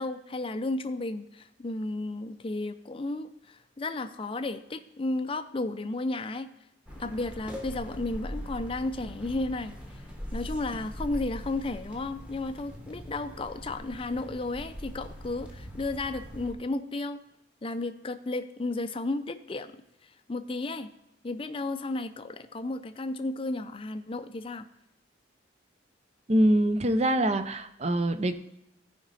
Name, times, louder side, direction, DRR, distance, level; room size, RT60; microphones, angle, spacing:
voice 1, 0.0-6.5 7.0-10.1 10.3-17.2 17.6-19.7 20.0-20.9 21.2-24.7, left 2 dB, 30° left, 9 dB, 0.5 m, -33 dB
sound 1, 6.9-16.5, equal, 5° right, 1.1 m, -41 dB
voice 2, 26.3-28.3, right 1 dB, 35° right, 10 dB, 0.6 m, -24 dB
14.5 x 5.2 x 4.1 m, 0.85 s
head